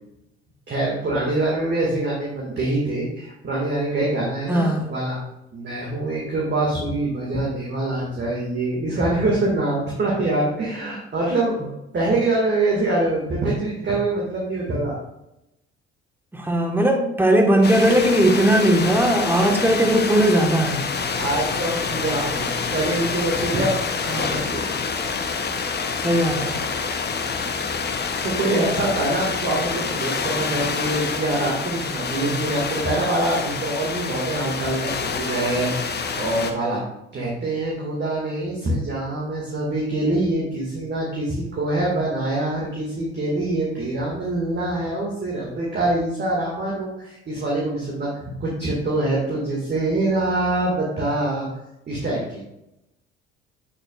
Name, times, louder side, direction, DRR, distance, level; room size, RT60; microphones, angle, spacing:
voice 1, 0.7-5.2 5.5-15.0 21.2-23.8 24.0-24.7 28.2-36.8 37.1-51.5 51.9-52.4, right 2 dB, 35° right, -4 dB, 2.2 m, -24 dB
voice 2, 4.5-4.9 16.3-20.9 24.1-24.3 26.0-26.6, right 1 dB, 5° right, 2 dB, 1.5 m, -19 dB
sound 1, 17.6-36.5, left 5 dB, 30° left, 1.0 m, -27 dB
8.3 x 6.7 x 2.5 m, 0.87 s
figure-of-eight pair, 55°, 32 cm